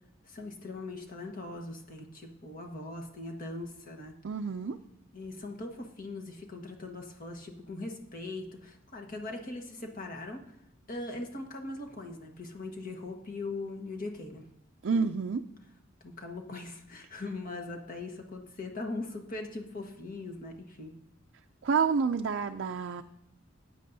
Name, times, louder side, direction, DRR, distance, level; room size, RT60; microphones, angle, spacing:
voice 1, 0.2-4.1 5.1-10.5 10.9-14.5 16.0-20.9, left 2 dB, 45° left, 3 dB, 1.4 m, -40 dB
voice 2, 4.2-4.8 14.8-15.4 21.6-23.0, right 5 dB, 60° right, 5 dB, 0.4 m, -28 dB
14.5 x 9.4 x 2.7 m, 0.78 s
head